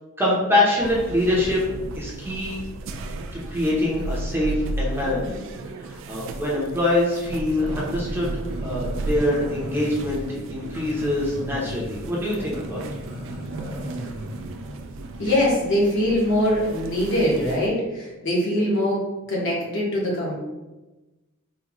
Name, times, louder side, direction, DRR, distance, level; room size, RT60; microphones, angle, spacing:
voice 1, 0.2-1.6 1.9-2.6 2.9-3.1 3.5-5.4 5.9-12.8, left 1 dB, 10° right, -5 dB, 0.6 m, -24 dB
sound 1, 0.8-17.7, right 2 dB, 65° right, 0.3 m, -34 dB
Growling, 8.2-15.5, equal, 80° right, 0.7 m, -36 dB
voice 2, 15.2-19.0 19.3-20.3, left 1 dB, 60° left, -4 dB, 1.0 m, -22 dB
3.8 x 2.1 x 2.9 m, 1.1 s
head